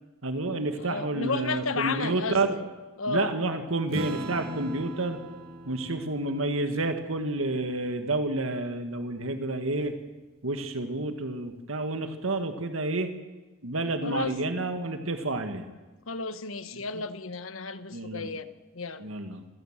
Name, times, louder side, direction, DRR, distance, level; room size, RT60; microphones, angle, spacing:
voice 1, 0.2-2.5 3.1-5.2 5.6-9.9 10.4-13.1 13.6-15.7 17.9-18.3 19.0-19.4, right 2 dB, 80° right, 7 dB, 1.7 m, -29 dB
voice 2, 0.7-2.7 3.0-3.3 14.0-14.4 16.1-19.1, left 3 dB, 80° left, 12 dB, 1.2 m, -33 dB
Acoustic guitar / Strum, 3.9-8.7, right 2 dB, 50° right, 2.1 m, -40 dB
26.5 x 16.5 x 7.4 m, 1.2 s
head